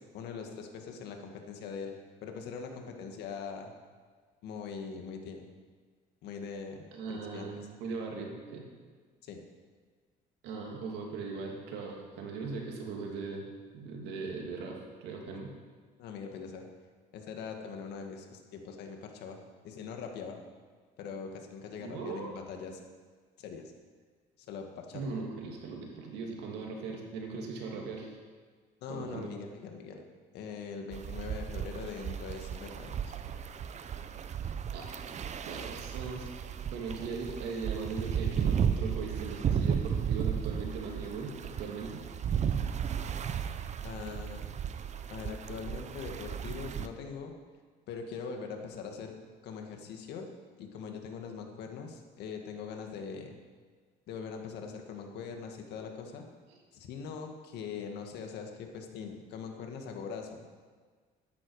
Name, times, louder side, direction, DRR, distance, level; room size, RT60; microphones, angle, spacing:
voice 1, 0.1-2.0 2.2-3.7 4.4-5.5 6.2-7.5 9.2-9.4 16.0-16.7 17.1-20.4 21.0-22.8 23.4-23.7 24.4-25.1 28.8-30.0 30.3-33.1 43.8-44.5 45.1-47.3 47.9-49.1 49.4-50.3 50.6-53.4 54.1-56.2 56.7-60.4, left 5 dB, 80° left, 3 dB, 1.9 m, -42 dB
voice 2, 6.9-8.7 10.4-13.4 13.7-15.5 21.8-22.3 24.9-28.1 28.9-29.3 34.7-34.9 35.5-42.1, right 4 dB, 90° right, 0 dB, 2.6 m, -39 dB
sound 1, 30.9-46.9, right 8 dB, 45° right, 0.8 m, -34 dB
14.0 x 10.5 x 4.9 m, 1.5 s
cardioid pair, 110°, 17 cm